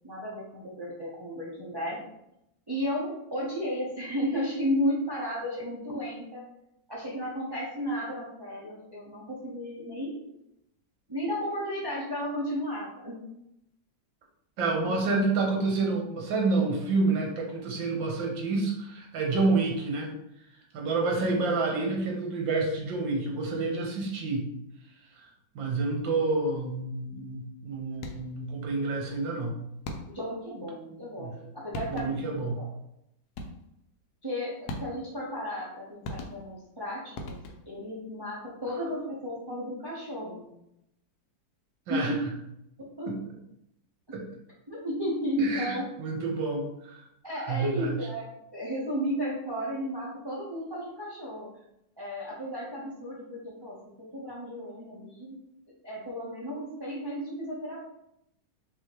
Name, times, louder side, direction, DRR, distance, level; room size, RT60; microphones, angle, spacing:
voice 1, 0.0-2.0 2.7-6.4 6.9-10.2 11.1-13.2 30.1-32.7 34.2-34.5 34.8-37.4 37.6-40.5 41.9-42.1 42.8-43.1 44.7-45.9 47.2-51.5 52.0-55.4 55.8-57.8, equal, 30° right, -6 dB, 0.4 m, -33 dB
voice 2, 14.6-20.1 20.7-24.5 25.2-25.3 25.6-29.6 31.2-31.3 31.9-32.6 41.9-42.1 43.1-43.2 44.1-44.3 45.4-47.0 47.5-47.9, right 3 dB, 80° right, 0 dB, 1.7 m, -28 dB
sound 1, 27.9-28.4 29.8-30.4 31.4-31.5 31.7-32.4 33.4-33.8 34.7-35.2 36.0-36.7 37.2-37.8, left 1 dB, 70° left, 1.1 m, -39 dB
5.6 x 2.9 x 3.0 m, 0.81 s
omnidirectional pair, 2.0 m